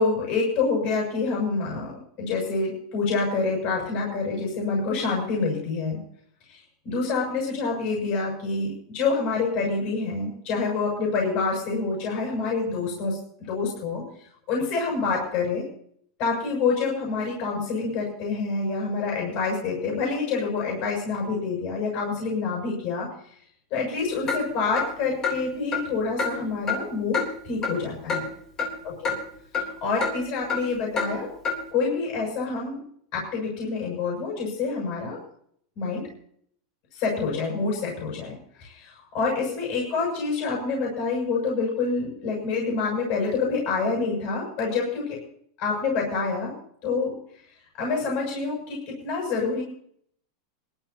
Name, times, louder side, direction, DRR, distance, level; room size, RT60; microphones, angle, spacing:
voice 1, 0.0-6.0 6.5-13.2 13.5-14.0 14.5-15.6 16.2-23.1 23.7-28.2 28.8-29.1 29.5-31.3 31.7-32.8 33.1-35.2 35.7-36.1 37.0-45.2 45.6-46.5 46.8-47.2 47.8-49.6, left 4 dB, 40° left, -2 dB, 6.8 m, -27 dB
Clock, 24.3-24.4 24.8-24.9 25.2-25.4 25.7-25.8 26.2-26.3 26.7-26.8 27.1-27.3 27.6-27.7 28.1-28.2 28.6-28.7 29.0-29.2 29.5-29.7 30.0-30.1 30.5-30.6 31.0-31.1 31.4-31.6, left 5 dB, 20° left, 3.4 m, -26 dB
26.0 x 12.5 x 2.9 m, 0.64 s
supercardioid pair, 170°, 2 cm